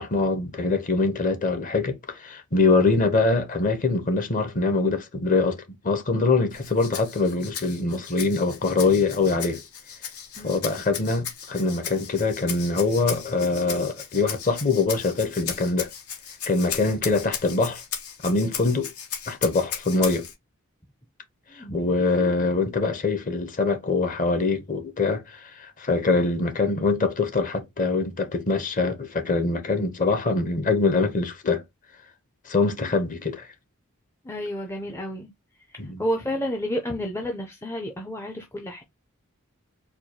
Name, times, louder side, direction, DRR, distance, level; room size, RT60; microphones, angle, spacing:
voice 1, 0.0-9.6 10.4-15.9 16.5-17.8 18.2-18.9 19.3-20.3 21.5-31.6 32.5-33.5 35.8-36.0, left 3 dB, 35° left, 0.8 m, -24 dB
Rattle (instrument), 6.5-20.3, left 8 dB, 80° left, 1.0 m, -36 dB
voice 2, 10.4-10.7 21.6-21.9 34.2-35.3 35.7-38.8, equal, 10° left, 0.4 m, -31 dB
4.5 x 2.3 x 2.7 m
head